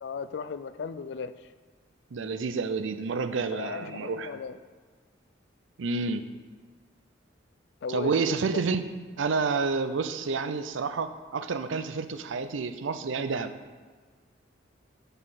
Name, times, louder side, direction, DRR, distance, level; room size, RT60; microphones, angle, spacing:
voice 1, 0.0-1.3 3.5-4.5 7.8-8.6, left 5 dB, 65° left, 13 dB, 0.3 m, -36 dB
voice 2, 2.1-4.4 5.8-6.2 7.9-13.5, right 4 dB, 80° right, 11 dB, 0.5 m, -29 dB
6.1 x 5.3 x 5.7 m, 1.5 s
head